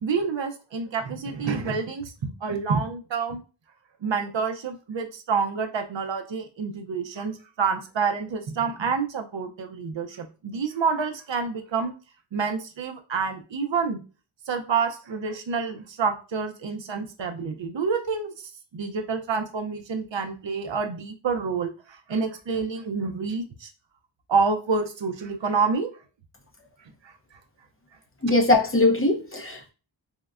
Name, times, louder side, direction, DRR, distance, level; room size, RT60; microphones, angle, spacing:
voice 1, 0.0-3.4 4.0-11.9 12.3-14.0 14.5-18.3 18.7-23.7 24.3-25.9 27.0-27.1, right 5 dB, 70° right, 0.5 m, -28 dB
voice 2, 28.2-29.7, left 2 dB, 30° left, 0.6 m, -21 dB
3.6 x 2.1 x 2.3 m
wide cardioid pair, 45°, 47 cm